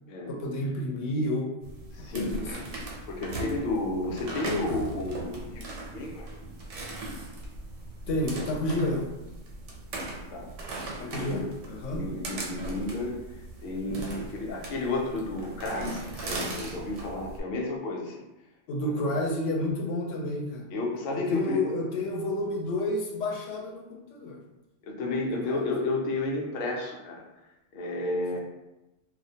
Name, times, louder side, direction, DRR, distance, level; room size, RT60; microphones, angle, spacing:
voice 1, 0.3-1.6 2.1-2.7 8.1-9.1 11.0-12.0 18.7-20.7 21.1-24.4 25.4-25.6, left 1 dB, 85° left, 0 dB, 0.9 m, -30 dB
sound 1, 1.6-17.4, right 2 dB, 90° right, 0.9 m, -38 dB
voice 2, 1.9-2.3 3.1-6.3 10.3-10.5 11.0-11.5 11.9-13.2 13.6-18.2 18.8-18.9 20.7-21.6 24.8-27.2 27.7-28.4, left 2 dB, 60° left, -1 dB, 0.6 m, -32 dB
2.4 x 2.1 x 2.7 m, 0.99 s
omnidirectional pair, 1.2 m